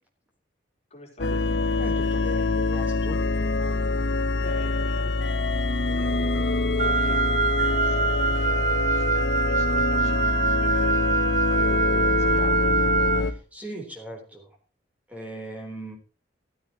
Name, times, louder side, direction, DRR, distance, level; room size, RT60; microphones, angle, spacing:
voice 1, 0.9-1.5 4.4-5.2 5.8-11.0 11.5-12.8, left 1 dB, 40° left, 1 dB, 3.9 m, -44 dB
sound 1, 1.2-13.3, left 3 dB, 80° left, 1.0 m, -25 dB
voice 2, 1.8-3.2 13.2-14.5 15.1-16.0, right 1 dB, 10° right, 1 dB, 3.8 m, -38 dB
Wind instrument woodwind instrument, 6.8-13.2, right 5 dB, 45° right, 0.7 m, -25 dB
15.0 x 13.5 x 3.0 m, 0.32 s
head